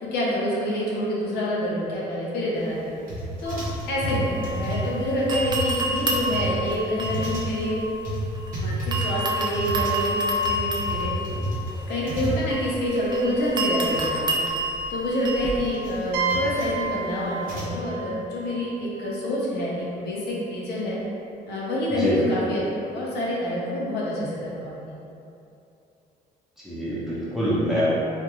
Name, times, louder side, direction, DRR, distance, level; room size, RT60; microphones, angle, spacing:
voice 1, 0.0-2.9 3.4-7.8 8.6-11.4 11.9-14.5 14.9-21.0 21.5-22.6 22.9-25.0, equal, 70° left, -6 dB, 0.7 m, -27 dB
sound 1, 3.1-12.9 13.1-13.2 13.4-14.0 14.4-17.8, right 1 dB, 55° right, 0.8 m, -31 dB
sound 2, 3.5-5.0 5.3-8.5 8.9-15.7, right 1 dB, 25° right, 0.3 m, -29 dB
sound 3, 16.1-19.8, right 4 dB, 80° right, 0.5 m, -32 dB
voice 2, 26.6-27.9, equal, ahead, -10 dB, 0.7 m, -25 dB
2.4 x 2.2 x 2.9 m, 2.7 s
cardioid pair, 110°, 17 cm